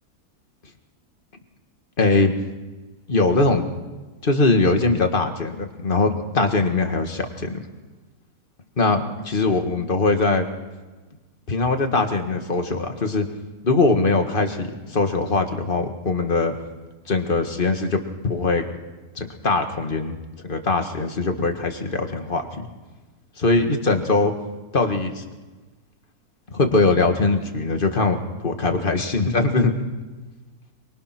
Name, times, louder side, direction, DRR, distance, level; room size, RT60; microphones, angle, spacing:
voice 1, 2.0-2.3 3.1-3.6 4.2-7.6 8.8-10.5 11.5-13.3 13.6-16.5 17.1-18.6 19.2-22.7 23.4-24.3 24.7-25.2 26.5-28.2 28.4-29.7, left 3 dB, 35° left, 5 dB, 2.0 m, -21 dB
24.0 x 23.5 x 6.1 m, 1.2 s
omnidirectional pair, 1.6 m